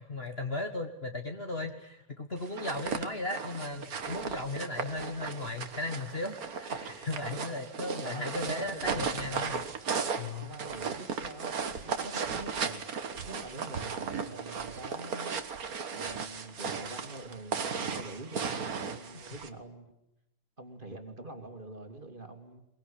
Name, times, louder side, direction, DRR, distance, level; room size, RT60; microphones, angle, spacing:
voice 1, 0.0-1.7 2.2-9.6 10.2-10.5, left 2 dB, 35° left, 4 dB, 1.7 m, -36 dB
sound 1, 2.4-19.5, right 6 dB, 50° right, 1.8 m, -36 dB
voice 2, 8.0-9.7 10.4-12.8 13.3-15.4 15.9-19.9 20.6-22.6, right 2 dB, 25° right, 5 dB, 2.7 m, -45 dB
22.5 x 21.5 x 10.0 m, 0.87 s
omnidirectional pair, 2.1 m